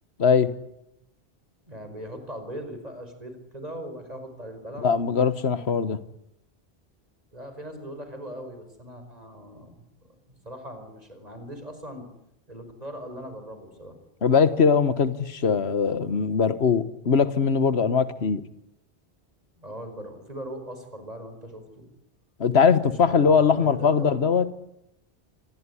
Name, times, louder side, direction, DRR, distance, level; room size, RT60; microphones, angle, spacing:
voice 1, 0.2-0.5 4.8-6.0 14.2-18.4 22.4-24.5, left 6 dB, 85° left, 1.5 m, -21 dB
voice 2, 1.7-4.9 7.3-12.1 12.5-14.0 19.6-21.8 22.8-24.1, equal, 40° right, 5.3 m, -40 dB
26.5 x 19.5 x 9.9 m
omnidirectional pair, 1.1 m